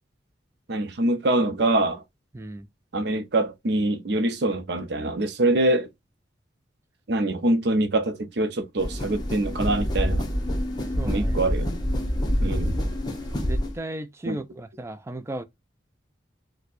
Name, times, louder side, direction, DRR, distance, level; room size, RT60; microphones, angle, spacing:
voice 1, 0.7-2.0 2.9-5.9 7.1-10.2 11.1-11.7 12.4-12.7 14.3-14.4, right 2 dB, 60° right, 0.6 m, -24 dB
voice 2, 2.3-2.7 10.8-11.4 13.4-15.4, right 2 dB, 15° right, 0.3 m, -36 dB
sound 1, 8.8-13.8, equal, 20° left, 0.7 m, -26 dB
4.2 x 2.1 x 2.4 m
head